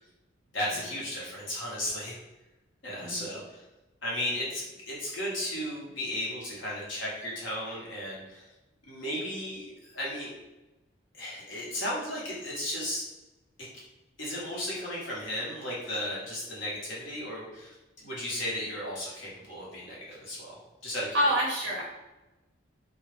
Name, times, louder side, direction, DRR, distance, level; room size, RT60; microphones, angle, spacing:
voice 1, 0.5-2.2 2.8-3.6 4.0-8.5 8.9-10.4 11.1-13.0 14.2-21.1, left 1 dB, 70° left, -6 dB, 1.0 m, -35 dB
voice 2, 3.0-3.3 21.1-22.0, equal, 55° right, -3 dB, 0.4 m, -27 dB
2.3 x 2.1 x 3.1 m, 1.1 s
head